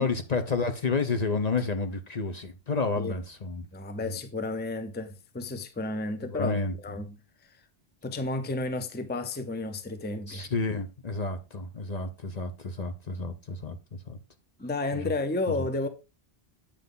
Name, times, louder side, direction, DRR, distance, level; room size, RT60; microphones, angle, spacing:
voice 1, 0.0-3.7 4.0-4.2 6.2-6.7 10.3-14.2 14.9-15.1, left 4 dB, 45° left, 0.9 m, -30 dB
voice 2, 3.7-6.6 6.8-7.1 8.0-10.5 14.6-15.9, left 2 dB, 10° left, 0.6 m, -32 dB
8.4 x 5.6 x 3.9 m
omnidirectional pair, 1.1 m